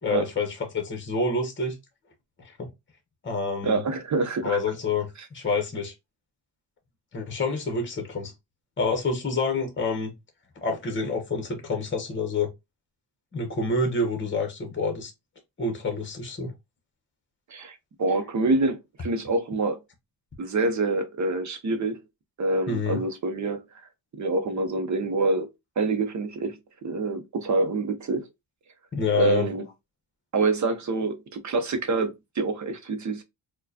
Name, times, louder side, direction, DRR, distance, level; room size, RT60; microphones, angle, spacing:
voice 1, 0.0-1.7 2.6-2.7 3.2-3.8 4.4-5.9 7.1-8.3 8.8-10.1 10.6-12.5 13.3-15.1 15.6-16.5 22.7-23.0 28.9-29.5, left 3 dB, 25° left, 0.9 m, -27 dB
voice 2, 3.6-4.6 17.5-19.8 20.4-22.0 22.4-23.6 24.2-25.5 25.8-28.2 29.1-29.6 30.3-33.2, right 3 dB, 40° right, 0.7 m, -26 dB
4.5 x 2.2 x 2.7 m
wide cardioid pair, 130°, 44 cm